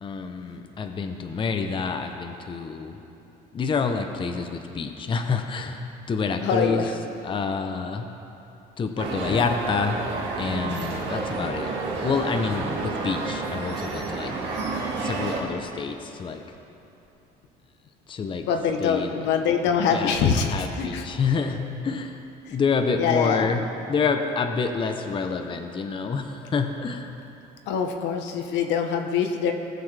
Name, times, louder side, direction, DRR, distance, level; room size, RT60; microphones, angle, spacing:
voice 1, 0.0-3.0 3.5-8.1 8.8-10.0 10.4-11.7 12.0-14.3 15.0-16.4 18.1-18.5 18.8-19.2 19.9-22.2 22.5-23.6 23.9-27.1, left 5 dB, 25° left, 5 dB, 0.7 m, -28 dB
voice 2, 6.4-6.9 18.5-21.0 23.0-23.5 27.7-29.5, left 6 dB, 75° left, 4 dB, 1.0 m, -24 dB
sound 1, 9.0-15.4, right 3 dB, 70° right, 1.8 m, -30 dB
18.5 x 6.9 x 3.3 m, 2.9 s
cardioid pair, 115°, 19 cm